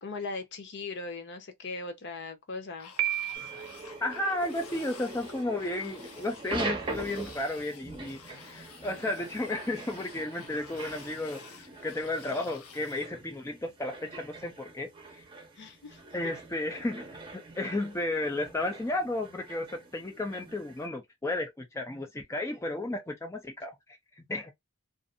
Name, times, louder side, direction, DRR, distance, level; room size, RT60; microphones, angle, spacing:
voice 1, 0.0-2.9 15.6-16.3, left 3 dB, 55° left, 0.8 m, -39 dB
sound 1, 2.8-13.1, left 6 dB, 90° left, 0.7 m, -51 dB
Piano, 3.0-3.9, right 14 dB, 70° right, 0.4 m, -32 dB
sound 2, 3.3-20.9, right 2 dB, 20° right, 0.7 m, -43 dB
voice 2, 4.0-15.2 16.1-17.1 17.3-24.5, left 2 dB, 15° left, 0.4 m, -33 dB
2.5 x 2.5 x 2.5 m
head